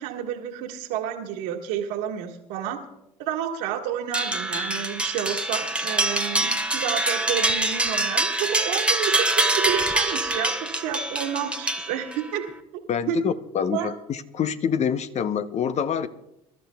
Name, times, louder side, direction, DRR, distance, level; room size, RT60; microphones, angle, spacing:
voice 1, 0.0-2.8 3.2-12.1 12.3-12.4 13.1-13.2 13.7-13.9, right 10 dB, 70° right, 1 dB, 1.9 m, -30 dB
sound 1, 4.1-12.3, right 2 dB, 5° right, 1.1 m, -25 dB
voice 2, 12.9-16.1, left 7 dB, 40° left, 12 dB, 0.8 m, -26 dB
26.5 x 13.0 x 2.3 m, 0.88 s
hypercardioid pair, 65°, 17 cm